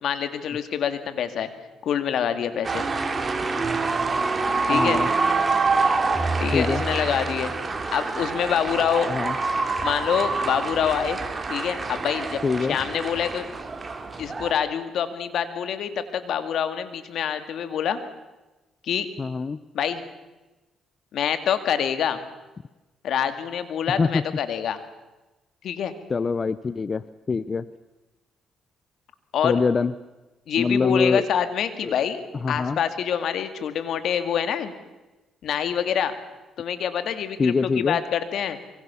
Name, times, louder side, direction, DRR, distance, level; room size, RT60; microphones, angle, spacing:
voice 1, 0.0-1.5 1.8-2.8 4.7-5.0 6.4-7.5 7.9-9.1 9.8-11.2 11.5-12.4 12.7-13.5 14.2-18.0 18.8-19.1 19.7-20.0 21.1-22.2 23.0-24.8 25.6-25.9 29.3-29.6 30.5-32.2 32.5-34.7 35.4-36.1 36.6-38.6, left 8 dB, 70° left, 10 dB, 2.3 m, -26 dB
sound 1, 2.6-14.5, right 3 dB, 30° right, 3.1 m, -26 dB
voice 2, 4.7-5.1 6.5-6.8 9.0-9.3 12.4-12.8 19.2-19.6 24.0-24.2 26.1-27.0 27.3-27.7 29.4-29.9 30.6-31.2 31.8-31.9 32.4-32.8 37.4-38.0, left 4 dB, 35° left, 16 dB, 0.7 m, -24 dB
25.5 x 23.5 x 7.1 m, 1.1 s
cardioid pair, 90°, 0 cm